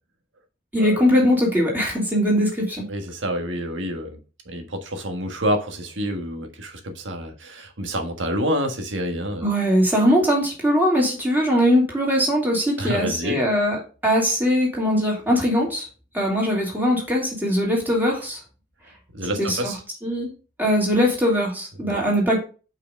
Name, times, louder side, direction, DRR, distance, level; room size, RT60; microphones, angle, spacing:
voice 1, 0.7-2.8 9.4-13.8 14.0-15.9 16.1-18.4 19.4-19.7 20.0-20.3 20.6-22.4, equal, 10° right, 2.6 m, -21 dB
voice 2, 2.9-4.2 4.5-9.5 12.8-13.4 19.1-19.8 21.8-22.0, equal, 80° right, 1.5 m, -28 dB
5.7 x 5.0 x 5.1 m
head